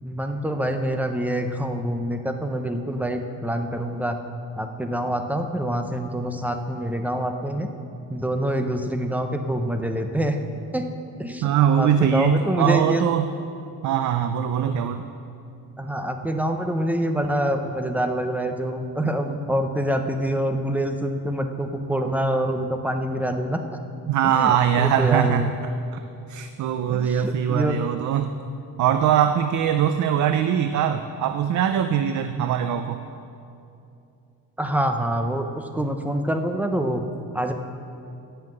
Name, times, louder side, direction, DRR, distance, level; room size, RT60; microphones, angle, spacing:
voice 1, 0.0-4.2 4.5-7.7 8.1-10.4 10.7-10.9 11.2-11.5 11.8-13.0 15.8-23.6 24.3-25.5 26.9-27.8 34.6-37.0 37.3-37.5, right 1 dB, 5° right, 5 dB, 0.6 m, -26 dB
voice 2, 11.4-13.3 13.8-15.0 24.1-25.5 25.9-26.0 26.3-28.3 28.8-33.0, right 9 dB, 55° right, 9 dB, 0.5 m, -22 dB
16.5 x 5.7 x 7.7 m, 2.7 s
cardioid pair, 170°, 36 cm